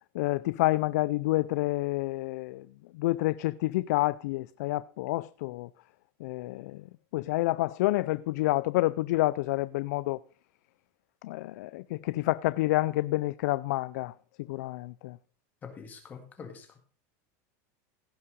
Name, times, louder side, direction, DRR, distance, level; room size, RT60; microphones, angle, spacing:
voice 1, 0.1-2.7 2.9-5.7 6.2-6.9 7.1-10.2 11.2-14.1 14.5-15.2, left 18 dB, 75° left, 0.4 m, -28 dB
voice 2, 15.6-16.8, left 6 dB, 20° left, 1.9 m, -45 dB
16.5 x 5.6 x 5.2 m
supercardioid pair, 175°, 9 cm